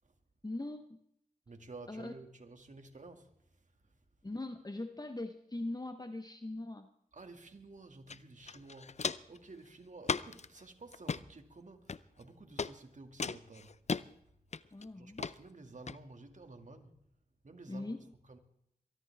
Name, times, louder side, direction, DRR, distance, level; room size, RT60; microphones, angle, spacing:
voice 1, 0.4-1.0 1.9-2.1 4.2-6.9 14.7-15.2 17.7-18.0, left 2 dB, 25° left, 1.1 m, -41 dB
voice 2, 1.5-4.0 7.1-13.8 15.0-17.0 17.4-18.4, right 3 dB, 50° right, 2.3 m, -53 dB
Walk footsteps, 8.1-8.2 8.5-9.4 10.0-10.5 10.9-11.2 11.9-12.2 12.6-12.7 13.2-14.0 14.5-14.8 15.2-15.3 15.9-16.0, left 5 dB, 45° left, 0.6 m, -36 dB
23.0 x 13.0 x 3.6 m
cardioid pair, 45°, 16 cm